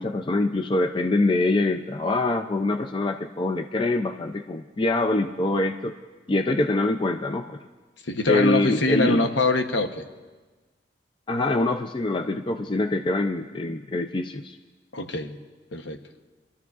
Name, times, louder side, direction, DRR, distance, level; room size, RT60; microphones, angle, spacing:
voice 1, 0.0-5.9 6.3-7.6 8.3-9.3 11.3-14.6, left 2 dB, 25° left, 6 dB, 0.4 m, -24 dB
voice 2, 8.1-10.0 14.9-15.4 15.7-16.0, left 2 dB, 65° left, 6 dB, 0.9 m, -24 dB
28.5 x 12.5 x 2.4 m, 1.3 s
head